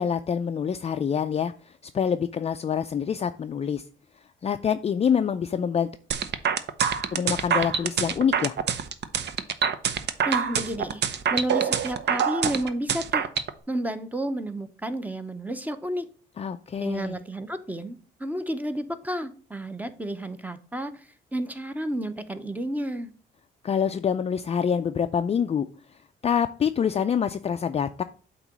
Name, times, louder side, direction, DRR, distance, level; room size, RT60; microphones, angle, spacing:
voice 1, 0.0-1.5 1.8-3.8 4.4-5.9 7.1-8.6 16.4-17.2 23.6-25.7 26.2-28.0, left 7 dB, 30° left, 8 dB, 0.4 m, -26 dB
sound 1, 6.1-13.5, right 7 dB, 60° right, 0.7 m, -25 dB
voice 2, 10.2-13.3 13.7-16.1 16.8-20.9 21.3-23.1, right 1 dB, 10° right, 10 dB, 0.8 m, -31 dB
8.1 x 3.0 x 6.0 m, 0.41 s
cardioid pair, 90°, 20 cm